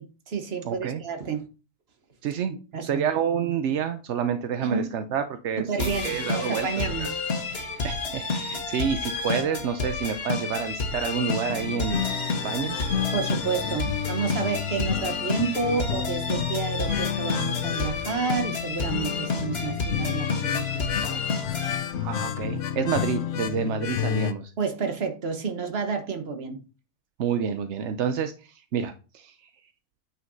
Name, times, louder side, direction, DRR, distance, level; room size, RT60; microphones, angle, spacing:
voice 1, 0.0-1.5 2.7-3.0 4.6-4.9 5.6-7.2 13.1-21.2 21.5-21.8 24.6-26.6, right 5 dB, 40° right, 1.2 m, -30 dB
voice 2, 0.6-1.0 2.2-2.5 2.8-6.7 7.0-7.1 7.8-12.1 12.4-12.8 22.0-24.5 27.2-29.3, right 7 dB, 65° right, 0.7 m, -28 dB
sound 1, 5.8-21.8, left 4 dB, 40° left, 1.3 m, -30 dB
sound 2, 11.5-24.3, left 10 dB, 60° left, 0.8 m, -31 dB
9.1 x 5.7 x 2.7 m
omnidirectional pair, 1.8 m